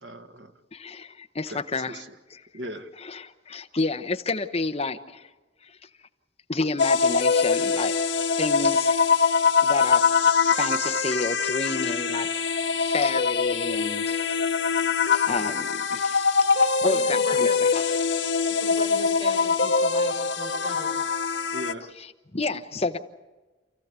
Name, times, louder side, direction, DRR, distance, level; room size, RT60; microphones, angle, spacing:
voice 1, 0.0-0.5 1.5-2.1 2.5-2.9 15.3-15.4 21.5-21.9, equal, 90° right, 6 dB, 1.8 m, -39 dB
voice 2, 0.7-2.0 2.3-2.4 3.0-5.3 5.6-5.8 6.5-7.9 8.2-10.2 10.4-12.3 12.8-14.4 15.1-17.9 22.0-23.0, left 3 dB, 35° left, 8 dB, 1.0 m, -30 dB
sound 1, 6.8-21.7, left 5 dB, 80° left, 0.9 m, -23 dB
voice 3, 16.8-17.6 18.5-21.2, right 1 dB, 30° right, 4 dB, 4.6 m, -39 dB
29.0 x 15.0 x 8.2 m, 1.2 s
head